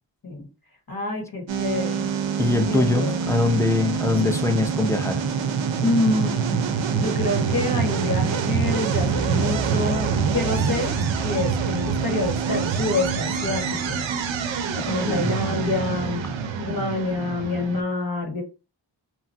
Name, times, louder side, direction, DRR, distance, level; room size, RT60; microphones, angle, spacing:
voice 1, 0.9-2.1 2.6-3.2 5.8-6.7 6.9-14.0 14.7-16.3 16.6-18.4, left 2 dB, 50° left, 1.4 m, -27 dB
sound 1, 1.5-17.8, right 6 dB, 85° right, 0.5 m, -25 dB
voice 2, 2.4-5.2 15.0-15.3, left 2 dB, 5° left, 0.5 m, -22 dB
2.9 x 2.3 x 2.7 m
wide cardioid pair, 60°, 44 cm